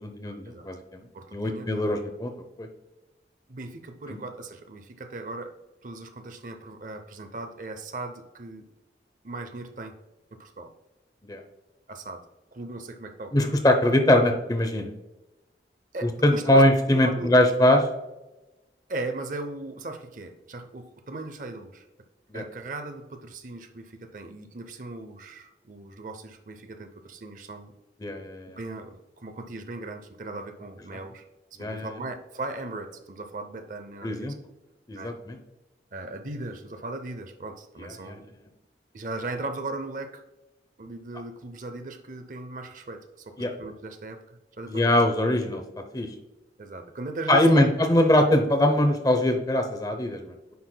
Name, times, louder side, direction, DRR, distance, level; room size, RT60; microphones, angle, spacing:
voice 1, 0.0-1.0 1.3-2.3 2.6-2.7 11.3-11.4 13.3-14.9 16.0-17.8 22.3-22.4 28.0-28.6 31.6-32.0 34.0-34.3 34.9-35.4 37.8-38.2 43.4-43.5 44.7-45.6 45.9-46.1 47.3-50.3, left 1 dB, 20° left, 6 dB, 0.7 m, -22 dB
voice 2, 1.1-2.0 3.5-5.5 5.8-8.7 9.2-9.9 10.4-10.7 11.9-12.2 12.5-13.5 15.9-16.6 16.9-17.4 18.9-21.9 22.3-27.7 28.6-31.2 31.6-34.4 34.9-35.1 35.9-38.3 38.9-40.2 40.8-45.1 46.6-47.7 48.0-48.1, right 2 dB, 45° right, 7 dB, 0.6 m, -38 dB
9.4 x 5.8 x 2.2 m, 1.0 s
head